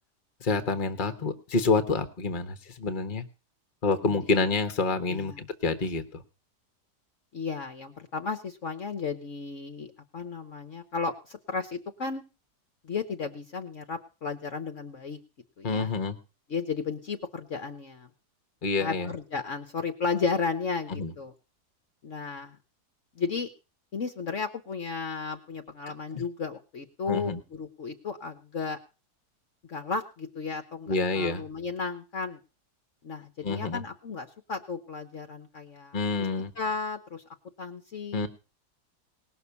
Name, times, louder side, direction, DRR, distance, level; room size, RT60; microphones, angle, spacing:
voice 1, 0.4-3.2 3.8-6.2 15.6-16.2 18.6-19.1 21.0-21.1 27.1-27.4 30.9-31.4 33.4-33.8 35.9-36.5 38.1-38.3, left 4 dB, 30° left, 10 dB, 1.3 m, -28 dB
voice 2, 4.0-4.4 5.1-5.4 7.3-12.2 12.8-15.2 15.6-15.9 16.5-18.1 18.8-21.3 22.0-22.6 23.1-23.5 23.9-28.8 29.7-32.4 33.0-36.0 36.5-37.2 37.6-38.3, left 4 dB, 50° left, 8 dB, 1.3 m, -34 dB
19.0 x 6.6 x 7.0 m, 0.34 s
omnidirectional pair, 1.8 m